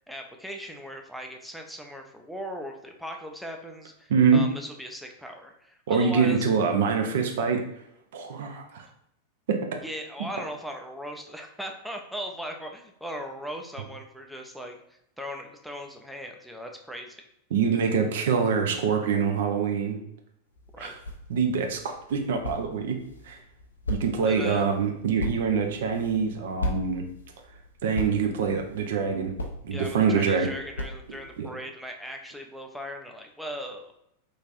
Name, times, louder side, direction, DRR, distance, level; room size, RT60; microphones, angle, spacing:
voice 1, 0.1-6.5 9.8-14.8 15.2-17.2 20.7-20.9 24.2-24.7 29.7-33.9, equal, ahead, 2 dB, 0.4 m, -38 dB
voice 2, 4.1-4.4 5.9-7.6 8.1-8.9 9.5-9.6 17.5-20.0 20.8-20.9 21.3-23.0 23.2-23.4 23.9-27.1 27.8-29.3 29.6-30.5 31.4-31.5, right 6 dB, 55° right, 4 dB, 0.5 m, -25 dB
sound 1, 20.5-31.4, left 1 dB, 75° left, 0.4 m, -38 dB
3.1 x 2.5 x 2.5 m, 0.78 s
figure-of-eight pair, 90°, 0 cm